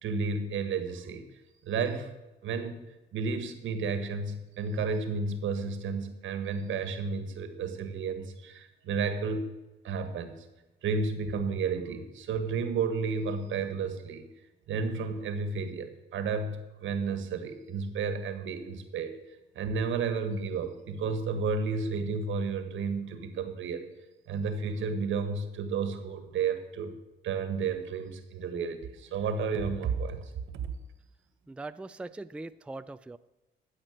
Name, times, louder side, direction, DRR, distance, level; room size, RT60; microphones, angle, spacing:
voice 1, 0.0-1.3 1.6-2.1 2.4-2.8 3.1-9.5 9.8-10.4 10.8-14.3 14.7-19.2 19.5-23.8 24.3-26.9 27.2-30.7, right 5 dB, 80° right, 9 dB, 1.6 m, -32 dB
voice 2, 31.5-33.2, right 2 dB, 5° right, 12 dB, 0.4 m, -41 dB
13.0 x 7.8 x 6.5 m, 1.1 s
cardioid pair, 90°, 20 cm